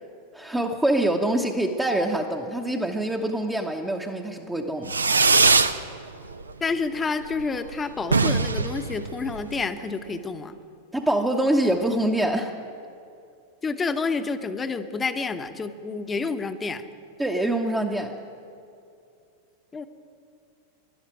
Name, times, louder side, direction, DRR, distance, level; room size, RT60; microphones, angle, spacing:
voice 1, 0.3-4.9 10.9-12.5 17.2-18.2, right 1 dB, 5° right, 2 dB, 0.9 m, -25 dB
Fireworks, 4.9-5.8 6.1-6.7 7.0-7.1 7.3-7.4 7.7-7.8 8.0-9.7, right 4 dB, 75° right, 0.6 m, -21 dB
voice 2, 6.6-10.6 13.6-16.8 19.7-19.9, left 4 dB, 15° left, 9 dB, 0.9 m, -29 dB
13.5 x 11.5 x 8.9 m, 2.5 s
figure-of-eight pair, 90°, 0 cm